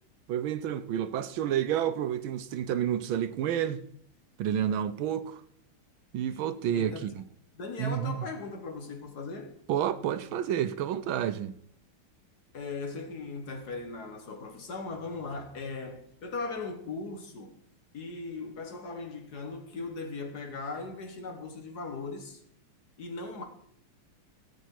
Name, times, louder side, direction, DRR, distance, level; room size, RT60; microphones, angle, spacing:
voice 1, 0.3-3.8 4.4-5.4 6.1-7.1 7.8-8.2 9.7-11.5, right 10 dB, 75° right, 1.4 m, -30 dB
voice 2, 6.7-7.1 7.5-9.6 12.5-17.6 17.9-22.4 23.0-23.4, left 3 dB, 50° left, 1.7 m, -38 dB
17.0 x 8.1 x 4.6 m
omnidirectional pair, 2.4 m